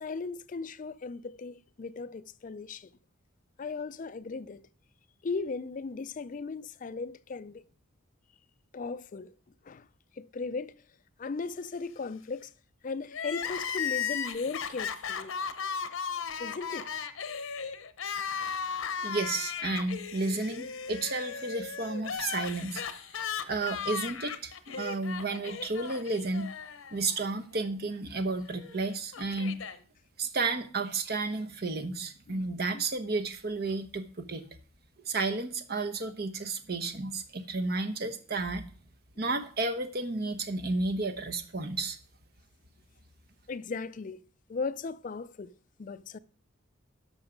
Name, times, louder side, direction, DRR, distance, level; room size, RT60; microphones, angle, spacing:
voice 1, 0.0-2.9 3.6-4.6 5.2-7.6 8.7-9.3 9.7-9.8 10.2-10.7 11.2-12.5 12.8-15.3 16.4-16.9 32.3-32.5 32.7-32.9 43.5-44.2 44.5-45.5 45.8-46.2, left 4 dB, 40° left, 0.4 m, -37 dB
Crying sobbing, 13.1-27.3 27.5-27.6 28.6-29.8, left 7 dB, 85° left, 0.8 m, -36 dB
voice 2, 19.0-22.8 23.5-26.5 26.9-29.6 30.2-34.4 35.0-38.7 39.2-42.0, right 3 dB, 50° right, 1.0 m, -32 dB
11.5 x 6.3 x 5.1 m
head